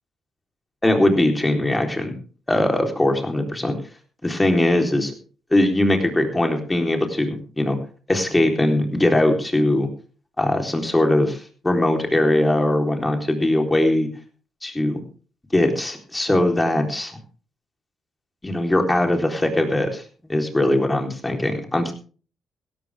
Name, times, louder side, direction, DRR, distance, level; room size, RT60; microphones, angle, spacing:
voice 1, 0.8-2.1 2.5-3.8 4.2-5.1 5.5-7.8 8.1-9.9 10.4-14.1 14.6-15.0 15.5-17.2 18.4-21.9, left 1 dB, 15° left, 4 dB, 3.8 m, -20 dB
16.5 x 13.5 x 3.6 m, 0.39 s
cardioid pair, 90°, 0 cm